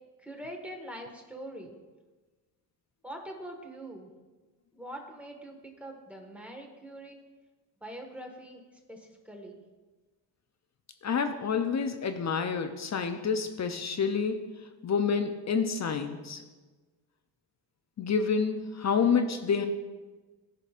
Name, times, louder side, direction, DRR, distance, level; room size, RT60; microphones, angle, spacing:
voice 1, 0.2-1.7 3.0-4.1 4.7-7.2 7.8-8.6 8.9-9.6, right 1 dB, 5° right, 1 dB, 1.6 m, -43 dB
voice 2, 11.0-14.4 14.8-16.4 18.0-19.7, left 6 dB, 40° left, 7 dB, 0.6 m, -28 dB
14.5 x 5.2 x 2.5 m, 1.3 s
cardioid pair, 85°, 44 cm